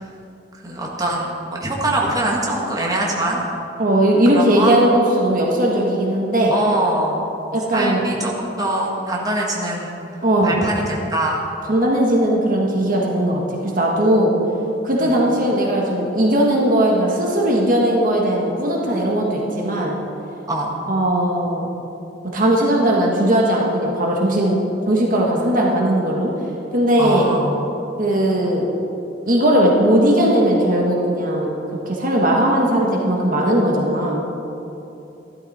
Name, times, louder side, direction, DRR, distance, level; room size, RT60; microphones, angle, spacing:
voice 1, 0.6-3.4 4.3-4.8 6.5-7.3 7.7-10.0 10.4-11.4 15.0-15.1 20.5-20.7 27.0-27.5, right 1 dB, 20° right, -3 dB, 1.7 m, -23 dB
voice 2, 3.8-6.5 7.5-8.0 10.2-10.6 11.7-14.3 14.8-20.0 20.9-21.7 22.3-24.6 24.9-26.3 26.7-27.3 28.0-28.7 29.3-31.5 31.8-34.3, right 1 dB, 50° right, -1 dB, 1.5 m, -18 dB
14.0 x 12.0 x 4.3 m, 2.9 s
head